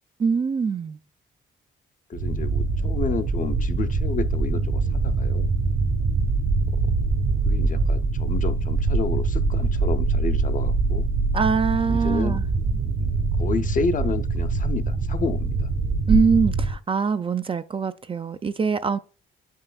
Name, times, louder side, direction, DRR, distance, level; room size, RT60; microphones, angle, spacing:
voice 1, 0.2-1.0 11.3-12.4 16.1-19.0, right 5 dB, 25° right, 0.4 m, -23 dB
voice 2, 2.1-5.5 7.5-11.1 11.9-12.4 13.0-15.7, left 5 dB, 40° left, 0.6 m, -30 dB
sound 1, 2.1-16.8, right 3 dB, 70° right, 1.6 m, -23 dB
8.6 x 5.4 x 2.3 m
cardioid pair, 90°, 20 cm